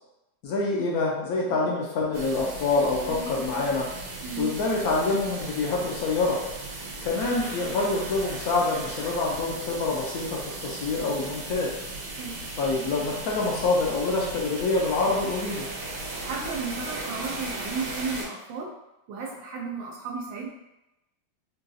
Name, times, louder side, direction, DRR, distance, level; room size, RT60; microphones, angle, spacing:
voice 1, 0.4-3.9 4.4-6.4 7.0-11.7 12.6-15.7, left 3 dB, 70° left, -2 dB, 0.9 m, -26 dB
sound 1, 2.1-18.3, right 2 dB, 65° right, 1.3 m, -37 dB
voice 2, 4.2-4.5 12.1-12.4 16.2-18.7 19.1-20.5, right 4 dB, 85° right, -2 dB, 1.3 m, -34 dB
3.9 x 2.3 x 2.6 m, 0.92 s
omnidirectional pair, 2.1 m